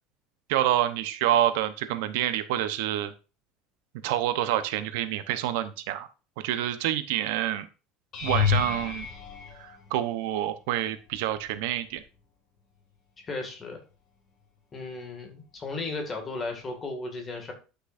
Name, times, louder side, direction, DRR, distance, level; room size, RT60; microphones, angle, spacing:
voice 1, 0.5-3.1 4.0-6.1 6.4-7.7 8.2-9.1 9.6-12.0, right 12 dB, 80° right, 11 dB, 0.9 m, -27 dB
sound 1, 8.1-10.4 11.1-11.5 11.9-12.1 16.4-16.5, left 7 dB, 40° left, 2.4 m, -30 dB
voice 2, 13.2-13.8 14.7-17.5, left 3 dB, 20° left, 3 dB, 2.1 m, -35 dB
11.5 x 6.0 x 2.6 m, 0.32 s
cardioid pair, 160°, 0 cm